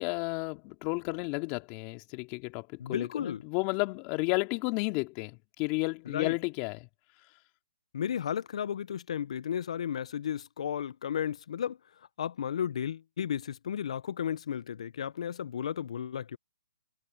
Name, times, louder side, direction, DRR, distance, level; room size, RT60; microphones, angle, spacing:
voice 1, 0.0-6.9, left 28 dB, 30° left, 2.8 m, -32 dB
voice 2, 2.8-3.4 6.1-6.3 7.9-11.8 12.2-16.4, left 9 dB, 60° left, 0.8 m, -33 dB
hypercardioid pair, 145°, 4 cm